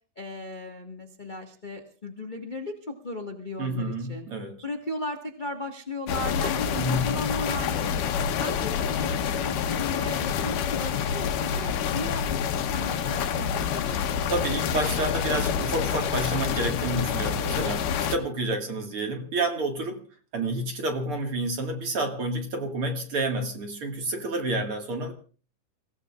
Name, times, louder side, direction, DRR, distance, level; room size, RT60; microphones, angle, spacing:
voice 1, 0.2-4.3 4.6-14.3, left 2 dB, 45° left, 2 dB, 0.5 m, -36 dB
voice 2, 3.6-4.6 6.7-7.2 14.3-20.0 20.3-25.1, right 2 dB, 50° right, 3 dB, 2.4 m, -29 dB
sound 1, 6.1-18.2, left 7 dB, 80° left, 2.6 m, -27 dB
29.0 x 17.0 x 2.5 m, 0.38 s
omnidirectional pair, 3.7 m